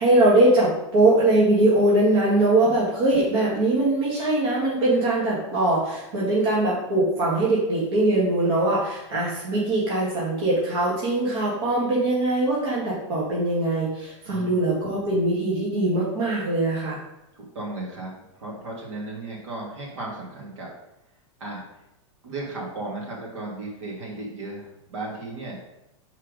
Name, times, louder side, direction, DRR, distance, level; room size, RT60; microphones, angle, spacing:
voice 1, 0.0-17.0, right 2 dB, 50° right, -6 dB, 1.9 m, -21 dB
voice 2, 2.4-2.7 14.2-14.6 17.3-20.7 21.4-21.6 22.2-25.6, right 2 dB, 70° right, -3 dB, 2.6 m, -35 dB
5.9 x 4.5 x 5.1 m, 0.89 s
supercardioid pair, 170°, 16 cm